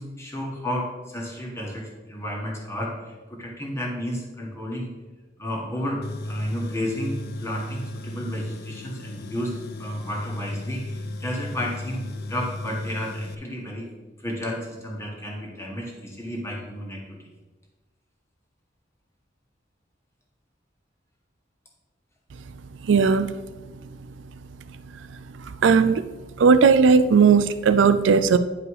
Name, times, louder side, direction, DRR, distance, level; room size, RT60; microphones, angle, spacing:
voice 1, 0.0-4.9 5.4-13.9 14.2-17.2, equal, 15° left, -2 dB, 1.8 m, -32 dB
Tools, 6.0-13.3, left 1 dB, 55° left, 0.5 m, -34 dB
voice 2, 22.9-23.3 25.6-26.1 26.4-28.4, right 5 dB, 85° right, 12 dB, 0.4 m, -17 dB
10.0 x 4.9 x 4.8 m, 1.2 s
head